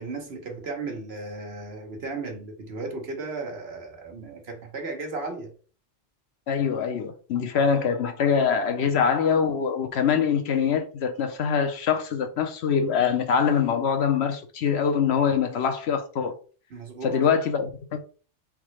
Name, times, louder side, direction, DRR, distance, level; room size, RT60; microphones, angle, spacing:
voice 1, 0.0-5.5 8.8-9.0 16.7-17.2, right 3 dB, 65° right, 1.2 m, -35 dB
voice 2, 6.5-16.4 17.0-18.0, left 7 dB, 70° left, 0.9 m, -24 dB
3.8 x 3.6 x 3.1 m
omnidirectional pair, 1.2 m